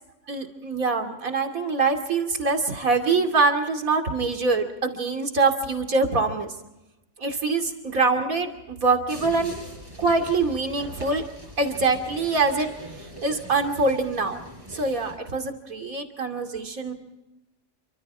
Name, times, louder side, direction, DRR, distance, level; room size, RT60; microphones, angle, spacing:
voice 1, 0.3-6.5 7.2-9.5 10.0-11.2 11.6-12.7 13.2-14.4 14.7-16.9, right 3 dB, 80° right, 5 dB, 3.1 m, -24 dB
sound 1, 9.1-15.2, equal, 15° right, 6.5 m, -42 dB
30.0 x 25.5 x 3.5 m, 0.93 s
omnidirectional pair, 1.4 m